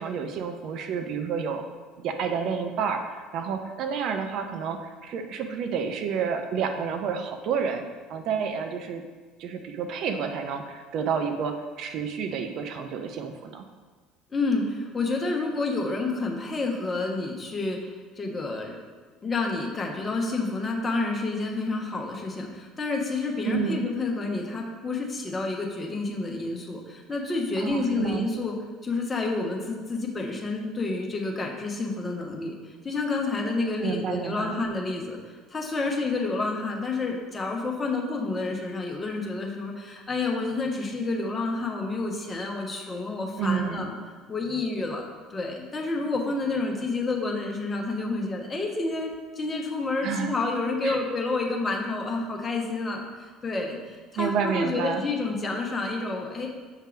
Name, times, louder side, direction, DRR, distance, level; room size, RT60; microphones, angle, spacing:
voice 1, 0.0-1.6 2.0-7.8 8.1-9.0 9.4-13.6 23.4-23.8 27.6-28.3 33.8-34.6 43.4-43.9 50.0-50.3 50.8-51.0 54.2-55.0, right 6 dB, 55° right, 5 dB, 0.5 m, -29 dB
voice 2, 14.3-18.7 19.2-28.5 28.8-43.9 44.3-56.5, left 3 dB, 25° left, 0 dB, 1.2 m, -29 dB
7.2 x 3.6 x 5.0 m, 1.4 s
figure-of-eight pair, 60°, 0 cm